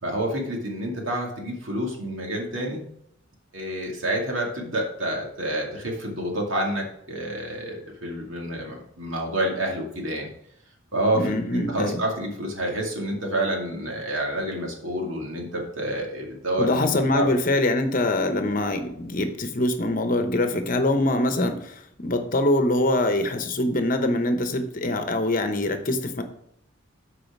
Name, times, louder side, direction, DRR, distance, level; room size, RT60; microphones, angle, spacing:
voice 1, 0.0-2.8 3.5-10.3 10.9-17.3, right 1 dB, 90° right, 0 dB, 2.3 m, -28 dB
voice 2, 11.1-12.0 16.6-26.2, left 1 dB, 45° left, 7 dB, 0.9 m, -24 dB
8.5 x 4.9 x 6.0 m, 0.70 s
head